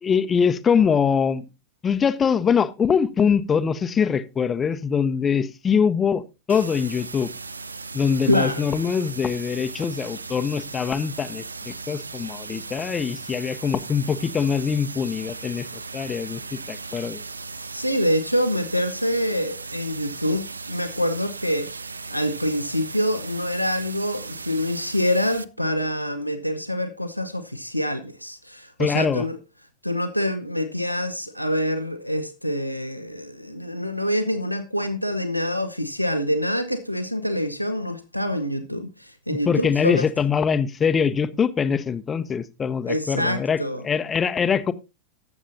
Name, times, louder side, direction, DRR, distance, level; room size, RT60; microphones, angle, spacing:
voice 1, 0.0-1.4 1.8-6.2 6.5-7.3 7.9-15.7 15.9-17.2 28.8-29.2 39.3-43.6 43.8-44.7, left 6 dB, 20° left, 0.7 m, -23 dB
sound 1, 6.5-25.4, right 4 dB, 75° right, 0.4 m, -37 dB
voice 2, 8.3-8.7 17.5-29.4 29.8-40.1 42.9-43.8, equal, 90° left, 0.7 m, -26 dB
19.0 x 7.2 x 2.7 m
figure-of-eight pair, 90°, 0 cm